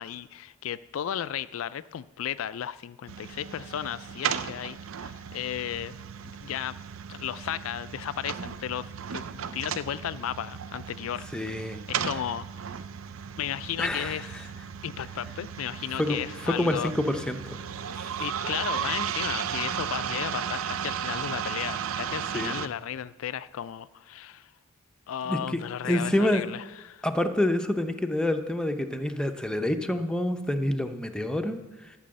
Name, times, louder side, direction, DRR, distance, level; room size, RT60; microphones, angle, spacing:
voice 1, 0.0-5.9 6.2-6.8 7.1-11.2 11.9-12.5 13.4-14.5 14.8-16.9 18.2-24.5 25.1-27.0, left 10 dB, 80° left, 15 dB, 0.4 m, -34 dB
sound 1, 3.1-22.7, right 8 dB, 80° right, 0.5 m, -35 dB
voice 2, 11.3-11.8 13.8-14.5 15.9-17.6 17.9-18.1 22.3-22.7 25.2-26.5 27.0-32.0, left 1 dB, 5° left, 6 dB, 0.7 m, -28 dB
12.5 x 6.1 x 7.7 m, 1.2 s
head